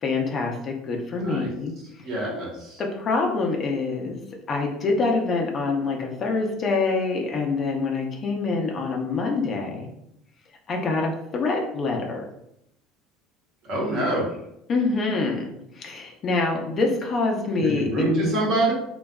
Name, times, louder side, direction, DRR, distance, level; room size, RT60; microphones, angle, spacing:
voice 1, 0.0-1.7 2.8-4.2 4.5-9.9 10.7-12.3 14.7-18.4, left 3 dB, 40° left, 0 dB, 0.5 m, -25 dB
voice 2, 2.0-2.8 13.6-14.3 17.6-18.7, right 1 dB, 55° right, -3 dB, 1.0 m, -25 dB
2.5 x 2.3 x 2.2 m, 0.78 s
supercardioid pair, 105°, 0 cm